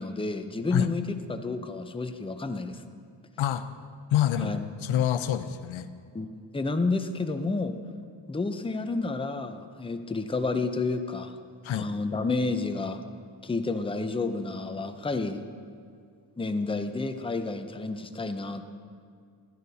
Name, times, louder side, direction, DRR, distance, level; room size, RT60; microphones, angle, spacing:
voice 1, 0.0-2.8 4.4-4.6 6.1-7.8 8.3-11.4 11.7-13.0 13.4-15.4 16.4-18.8, left 3 dB, 10° left, 7 dB, 0.6 m, -30 dB
voice 2, 3.4-3.7 4.1-5.9 11.6-11.9, left 10 dB, 85° left, 11 dB, 0.6 m, -27 dB
14.5 x 12.5 x 2.8 m, 2.3 s
cardioid pair, 85°, 46 cm